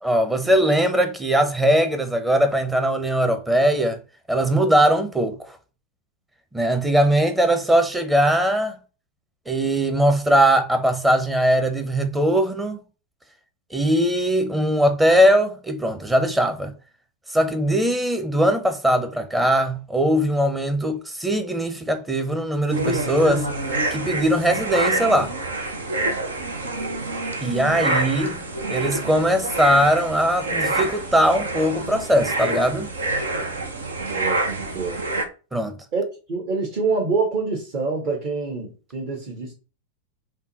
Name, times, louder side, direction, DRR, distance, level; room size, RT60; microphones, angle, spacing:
voice 1, 0.0-4.0 4.3-5.6 6.5-8.8 9.5-12.8 13.7-16.7 17.3-23.5 23.9-25.3 27.4-28.4 28.7-32.9 35.5-35.8, equal, 10° right, 0.8 m, -20 dB
sound 1, 22.7-35.3, right 2 dB, 70° right, 0.8 m, -27 dB
voice 2, 34.1-34.4 34.7-35.0 35.9-39.5, right 4 dB, 45° right, 1.5 m, -26 dB
5.5 x 2.3 x 4.1 m
figure-of-eight pair, 90°, 0 cm